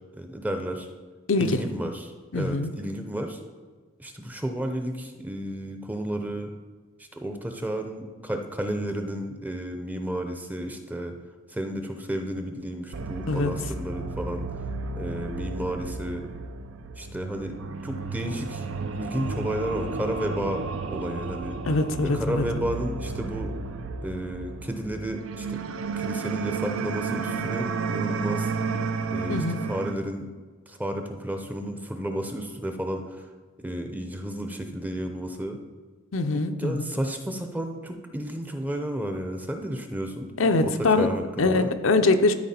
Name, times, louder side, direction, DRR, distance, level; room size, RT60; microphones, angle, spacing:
voice 1, 0.1-0.9 1.4-3.4 4.0-6.5 7.2-11.2 11.5-14.5 15.0-16.3 16.9-17.5 17.8-21.6 22.0-23.6 24.0-25.6 26.0-28.7 29.1-30.3 30.7-33.3 33.6-35.6 36.3-41.7, right 1 dB, 10° right, 5 dB, 0.6 m, -32 dB
voice 2, 1.3-1.6 2.3-2.7 13.3-13.5 21.7-22.4 29.3-29.7 36.1-36.9 40.4-41.1 41.4-42.3, left 3 dB, 70° left, 7 dB, 0.6 m, -23 dB
sound 1, 12.9-29.9, right 4 dB, 70° right, 0.5 m, -32 dB
12.5 x 4.6 x 4.3 m, 1.4 s
head